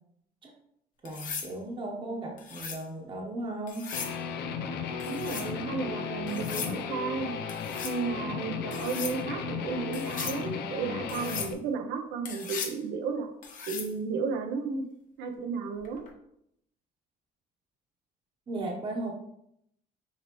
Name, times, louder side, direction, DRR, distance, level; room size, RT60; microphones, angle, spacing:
voice 1, 1.0-3.9 18.5-19.1, right 2 dB, 30° right, -1 dB, 0.9 m, -36 dB
sound 1, 1.1-1.5 2.4-2.8 3.7-4.2 5.0-5.5 6.3-6.8 7.5-8.0 8.7-9.2 9.9-10.4 11.1-11.5 12.3-12.8 13.4-13.9 15.9-16.1, left 6 dB, 50° left, 1.0 m, -38 dB
Guitar, 3.9-11.5, left 6 dB, 75° left, 0.6 m, -35 dB
voice 2, 5.0-7.3 7.8-13.3 13.7-14.8 15.2-16.0, right 5 dB, 90° right, 5 dB, 0.7 m, -33 dB
5.8 x 3.0 x 3.0 m, 0.74 s
cardioid pair, 110°, 17 cm